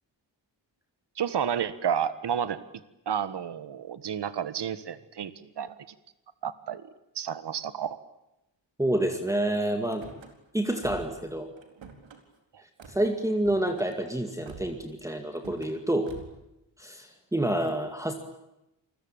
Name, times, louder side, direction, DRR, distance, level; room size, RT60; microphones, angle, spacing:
voice 1, 1.2-2.6 3.1-5.7 6.4-6.8 7.1-8.0, right 8 dB, 65° right, 14 dB, 1.6 m, -31 dB
voice 2, 8.8-10.0 10.5-11.5 12.9-16.1 16.8-18.1, right 1 dB, 5° right, 5 dB, 2.1 m, -28 dB
Car / Slam, 9.8-10.3 10.8-11.2 11.6-12.2 12.8-13.0 13.4-13.9 14.5-14.9 15.3-15.7 16.1-16.4, right 5 dB, 85° right, 4.3 m, -47 dB
28.0 x 21.5 x 8.9 m, 0.89 s
wide cardioid pair, 145°, 45 cm